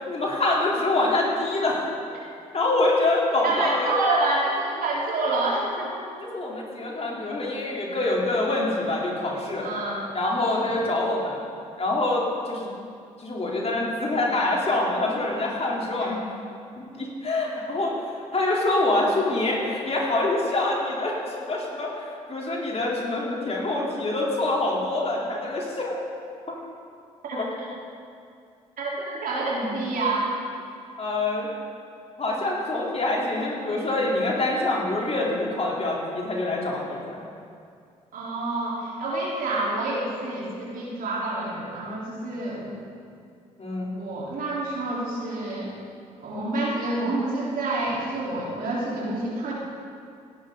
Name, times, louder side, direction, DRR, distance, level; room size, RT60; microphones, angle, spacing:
voice 1, 0.1-1.8 2.5-3.9 6.2-9.7 10.1-11.4 11.8-12.7 13.2-16.2 16.8-17.9 18.3-26.0 26.5-26.6 27.3-27.5 31.0-31.5 32.2-37.2 43.6-43.9, left 2 dB, 40° left, -3 dB, 3.6 m, -25 dB
voice 2, 3.4-5.9 9.6-10.1 10.5-10.8 27.2-27.4 28.8-30.3 38.1-42.7 44.0-45.7 46.2-49.5, right 2 dB, 55° right, -5 dB, 4.0 m, -28 dB
17.5 x 11.0 x 4.0 m, 2.3 s
hypercardioid pair, 50°, 17 cm